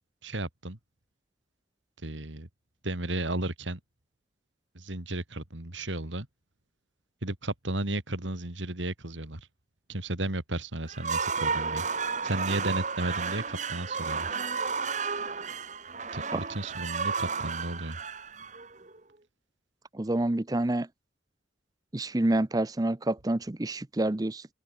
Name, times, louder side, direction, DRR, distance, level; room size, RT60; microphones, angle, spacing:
voice 1, 0.2-0.8 2.0-2.5 2.8-3.8 4.7-6.3 7.2-9.5 9.9-11.9 12.2-14.4 16.1-18.0, right 1 dB, 85° right, 3.0 m, -34 dB
sound 1, 10.9-19.0, right 5 dB, 40° right, 1.6 m, -32 dB
voice 2, 19.9-20.9 21.9-24.5, right 1 dB, 20° right, 0.5 m, -28 dB
head